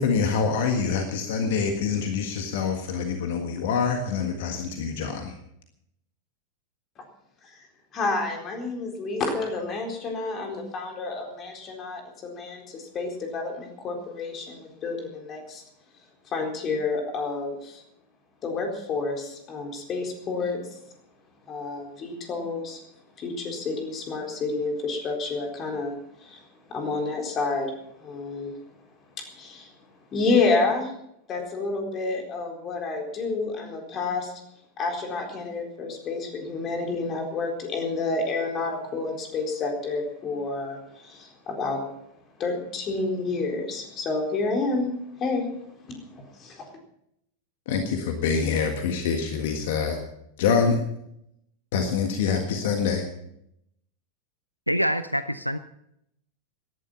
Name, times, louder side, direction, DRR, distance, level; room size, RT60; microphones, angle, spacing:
voice 1, 0.0-5.3 47.7-50.0 50.4-50.8 51.7-53.0, left 5 dB, 55° left, 5 dB, 1.6 m, -25 dB
voice 2, 7.9-15.6 16.3-17.8 18.4-20.8 21.5-22.8 23.2-25.9 26.2-26.4 26.7-27.7 28.0-28.6 29.2-29.7 30.1-30.9 31.3-34.3 34.8-41.8 42.4-44.9 45.2-45.5 45.9-46.7, left 3 dB, 30° left, 2 dB, 4.1 m, -29 dB
voice 3, 54.7-55.6, equal, 90° left, 14 dB, 0.5 m, -25 dB
17.5 x 11.5 x 5.7 m, 0.76 s
figure-of-eight pair, 90°, 0 cm